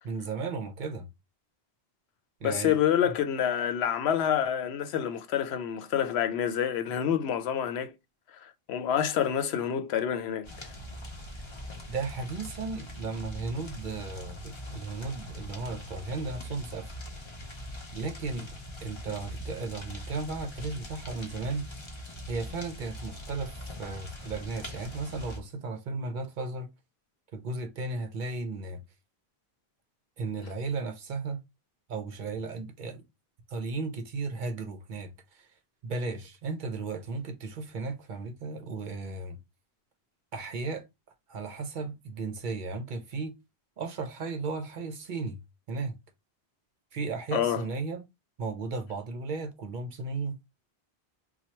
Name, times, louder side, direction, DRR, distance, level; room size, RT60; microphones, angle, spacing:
voice 1, 0.0-1.1 2.4-2.8 3.0-3.1 11.9-16.9 17.9-18.5 18.8-21.8 22.3-26.7 27.3-28.8 30.2-31.4 31.9-33.0 33.5-35.5 35.8-39.4 40.3-40.8 41.3-43.4 43.8-45.4 45.7-46.0 46.9-48.0 48.4-50.4, right 3 dB, 55° right, 0.7 m, -35 dB
voice 2, 2.4-7.9 8.4-10.7 47.3-47.6, left 9 dB, 85° left, 0.8 m, -28 dB
sound 1, 10.4-25.4, left 1 dB, 30° left, 0.7 m, -42 dB
2.9 x 2.2 x 4.2 m
omnidirectional pair, 1.0 m